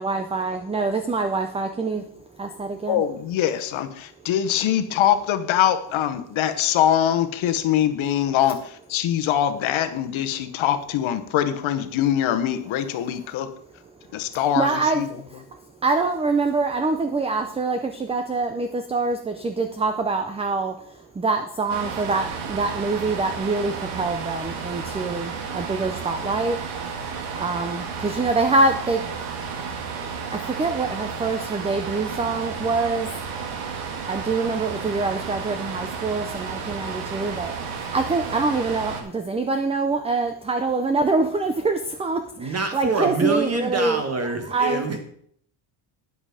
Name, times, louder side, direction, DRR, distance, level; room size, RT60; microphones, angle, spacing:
voice 1, 0.0-2.0 2.4-3.0 14.3-15.2 15.8-20.7 21.2-26.6 27.3-29.0 30.3-33.1 34.1-44.0 44.5-44.8, right 3 dB, 15° right, 7 dB, 0.5 m, -25 dB
voice 2, 2.9-13.5 14.1-15.1, left 10 dB, 70° left, 9 dB, 1.1 m, -23 dB
sound 1, 21.7-39.0, right 5 dB, 85° right, 1.9 m, -32 dB
voice 3, 42.4-45.0, right 3 dB, 30° right, 6 dB, 1.7 m, -26 dB
9.7 x 7.8 x 4.9 m, 0.65 s
cardioid pair, 150°, 49 cm